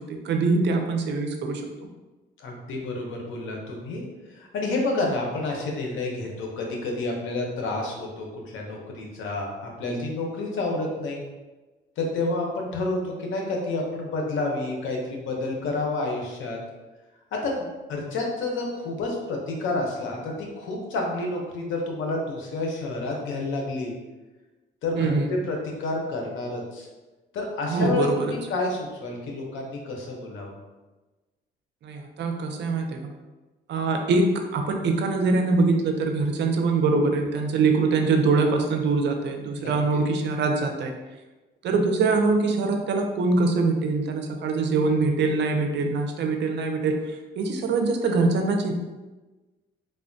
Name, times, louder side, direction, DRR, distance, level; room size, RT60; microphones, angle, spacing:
voice 1, 0.0-1.9 25.0-25.3 27.7-28.3 31.8-33.1 33.7-40.9 41.6-47.0 47.4-48.7, right 3 dB, 65° right, 4 dB, 0.5 m, -23 dB
voice 2, 2.4-11.2 12.0-16.6 17.3-23.9 24.8-26.9 27.3-30.5 39.6-39.7, left 2 dB, 80° left, 0 dB, 0.7 m, -29 dB
3.4 x 2.1 x 2.6 m, 1.2 s
cardioid pair, 90°, 20 cm